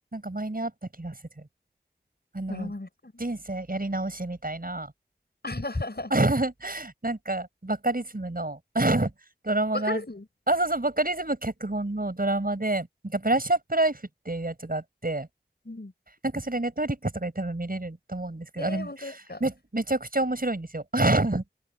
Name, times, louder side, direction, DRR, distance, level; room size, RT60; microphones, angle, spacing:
voice 1, 0.1-0.7 1.0-1.1 2.3-2.7 3.2-4.9 6.1-9.1 9.4-10.0 10.5-15.3 16.2-18.9 19.4-21.4, right 2 dB, 50° right, 7.2 m, -27 dB
voice 2, 2.5-3.2 5.4-6.1 9.7-10.3 15.6-15.9 18.6-19.4, left 2 dB, 65° left, 6.6 m, -34 dB
wide cardioid pair, 50°, 18 cm